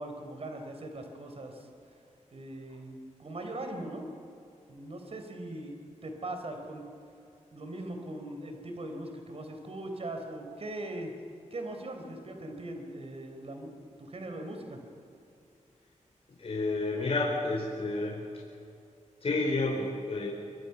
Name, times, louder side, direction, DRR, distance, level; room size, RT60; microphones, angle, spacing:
voice 1, 0.0-1.7 2.3-4.1 4.7-5.7 6.0-6.8 7.5-11.1 11.5-14.8, right 1 dB, 50° right, 4 dB, 4.1 m, -40 dB
voice 2, 16.4-18.2 19.2-20.3, left 2 dB, 50° left, -5 dB, 4.8 m, -30 dB
25.5 x 23.5 x 6.0 m, 2.5 s
wide cardioid pair, 130°, 13 cm